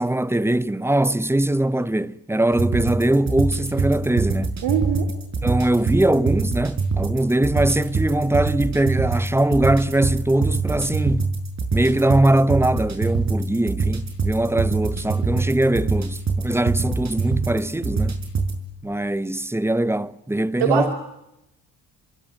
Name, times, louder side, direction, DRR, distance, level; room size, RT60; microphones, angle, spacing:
voice 1, 0.0-4.5 5.4-11.3 11.7-18.2 18.8-20.9, right 1 dB, 5° right, 0.9 m, -21 dB
sound 1, 2.5-18.6, right 4 dB, 40° right, 6.8 m, -25 dB
voice 2, 4.6-5.1 20.6-20.9, right 9 dB, 80° right, 2.8 m, -22 dB
26.5 x 21.5 x 9.2 m
cardioid pair, 80°, 41 cm